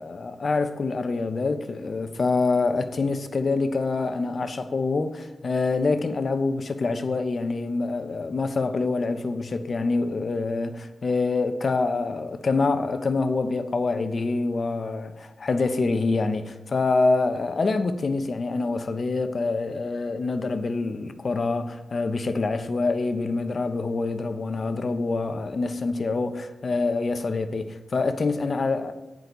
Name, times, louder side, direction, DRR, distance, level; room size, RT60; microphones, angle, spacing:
voice 1, 0.0-28.9, left 3 dB, 55° left, 1.0 m, -26 dB
14.5 x 10.0 x 4.0 m
wide cardioid pair, 85°, 0 cm